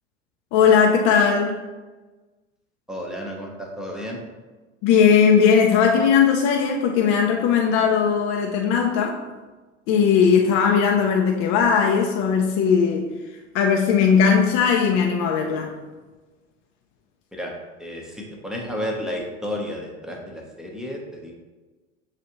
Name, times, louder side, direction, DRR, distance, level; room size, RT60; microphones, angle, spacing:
voice 1, 0.5-1.6 4.8-9.2 9.9-13.1 13.5-15.7, left 6 dB, 35° left, 1 dB, 0.5 m, -18 dB
voice 2, 2.9-4.2 17.3-17.5 17.8-21.3, equal, ahead, -1 dB, 0.7 m, -32 dB
6.9 x 2.5 x 2.9 m, 1.3 s
figure-of-eight pair, 80°, 38 cm